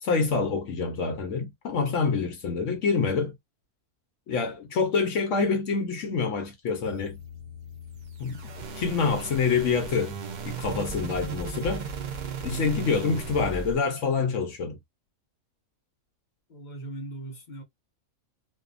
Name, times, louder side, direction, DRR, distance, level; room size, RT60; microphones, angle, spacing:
voice 1, 0.0-3.3 4.3-7.2 8.2-8.5 8.7-10.2 10.4-11.9 12.4-14.8, left 5 dB, 70° left, 0.9 m, -26 dB
sound 1, 6.8-13.8, right 4 dB, 65° right, 0.4 m, -36 dB
voice 2, 16.5-17.6, right 2 dB, 50° left, 0.6 m, -39 dB
2.6 x 2.3 x 2.4 m
omnidirectional pair, 1.5 m